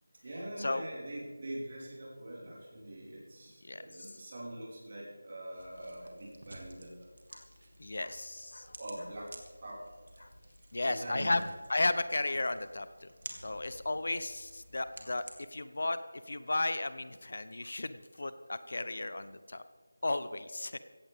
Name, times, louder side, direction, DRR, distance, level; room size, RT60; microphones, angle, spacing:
voice 1, 0.2-7.1 8.8-9.3 9.6-9.8 10.8-11.5, right 1 dB, 40° right, -5 dB, 5.4 m, -43 dB
voice 2, 3.7-4.1 7.3-7.5 7.8-8.8 10.2-10.3 10.7-11.4 11.7-13.1 13.4-15.2 15.5-16.0 16.3-19.6 20.0-20.8, left 2 dB, 60° left, 12 dB, 0.8 m, -34 dB
sound 1, 5.5-15.3, right 1 dB, 75° right, 2.6 m, -53 dB
16.0 x 15.5 x 3.6 m, 1.5 s
figure-of-eight pair, 170°, 0 cm